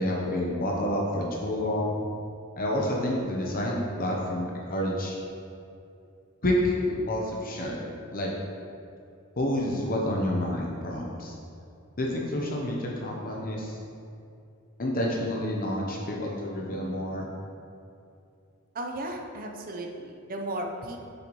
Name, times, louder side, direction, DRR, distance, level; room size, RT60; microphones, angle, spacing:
voice 1, 0.0-2.1 2.6-5.2 6.4-7.8 8.1-8.3 9.4-11.3 12.0-13.8 14.8-17.3, left 1 dB, 40° left, -2 dB, 0.8 m, -29 dB
voice 2, 18.7-21.0, right 1 dB, 40° right, 2 dB, 0.7 m, -35 dB
7.8 x 6.8 x 3.1 m, 2.5 s
head